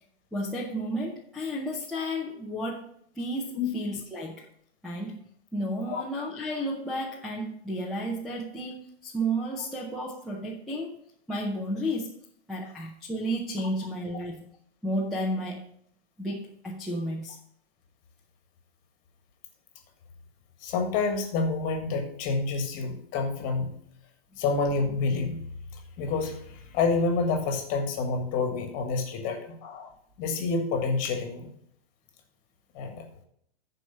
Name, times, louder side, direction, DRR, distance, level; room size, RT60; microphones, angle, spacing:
voice 1, 0.3-2.9 3.1-4.5 4.8-5.2 5.5-10.9 11.3-12.1 12.5-14.5 14.8-15.6 16.2-17.4, equal, ahead, -3 dB, 0.5 m, -32 dB
voice 2, 20.6-23.8 24.4-25.4 26.0-29.9 30.2-31.5 32.7-33.0, left 4 dB, 25° left, 5 dB, 1.5 m, -28 dB
11.5 x 4.8 x 5.5 m, 0.66 s
hypercardioid pair, 160°, 32 cm